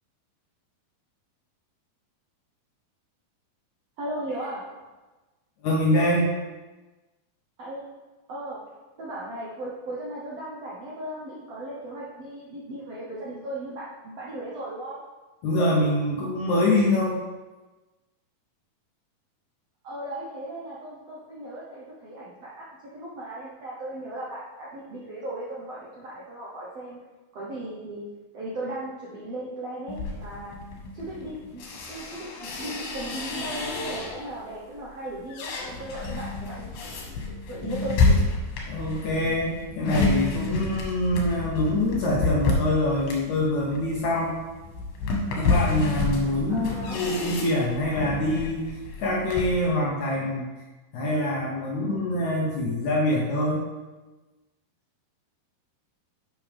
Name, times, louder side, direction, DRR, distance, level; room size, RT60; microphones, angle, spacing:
voice 1, 4.0-4.6 7.6-7.9 8.3-8.6 9.0-15.0 19.8-22.6 22.9-27.0 27.3-28.1 28.3-30.5 30.9-37.2 37.5-38.2 46.5-47.0, right 1 dB, 70° right, -6 dB, 1.5 m, -37 dB
voice 2, 5.6-6.3 15.4-17.2 38.7-44.3 45.3-48.7 49.0-50.5 50.9-53.6, left 1 dB, 65° left, -3 dB, 2.0 m, -25 dB
sound 1, 29.9-34.4 34.8-49.6, left 3 dB, 85° left, 3.4 m, -29 dB
10.5 x 6.1 x 3.5 m, 1.2 s
omnidirectional pair, 4.4 m